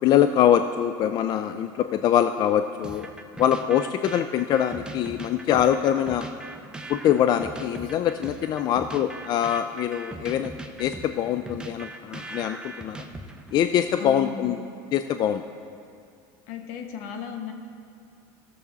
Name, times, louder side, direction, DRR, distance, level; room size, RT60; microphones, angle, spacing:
voice 1, 0.0-3.1 3.4-6.3 6.9-10.5 10.8-13.1 13.5-14.6 14.9-15.4, left 10 dB, 40° left, 9 dB, 0.3 m, -23 dB
sound 1, 2.8-13.6, right 2 dB, 10° right, 0.7 m, -40 dB
voice 2, 14.0-14.7 16.5-17.5, left 6 dB, 70° left, 5 dB, 1.2 m, -36 dB
14.5 x 6.8 x 4.0 m, 2.4 s
supercardioid pair, 110°, 10 cm